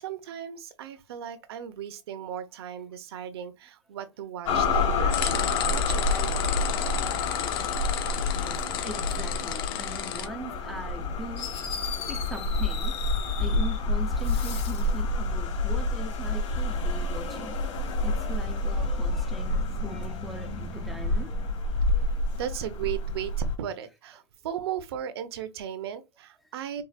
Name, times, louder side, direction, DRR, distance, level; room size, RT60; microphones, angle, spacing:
voice 1, 0.0-6.7 22.3-26.8, right 9 dB, 55° right, 0.7 m, -36 dB
sound 1, 4.4-23.6, left 2 dB, 80° left, 1.8 m, -28 dB
sound 2, 5.1-10.3, left 10 dB, 50° left, 0.7 m, -33 dB
voice 2, 8.3-11.5 12.1-13.0 13.4-17.5 18.0-21.3, right 1 dB, ahead, 0.4 m, -40 dB
Fireworks, 11.4-13.8 14.1-15.0, left 7 dB, 65° left, 2.2 m, -38 dB
4.8 x 2.4 x 2.4 m
supercardioid pair, 170°, 16 cm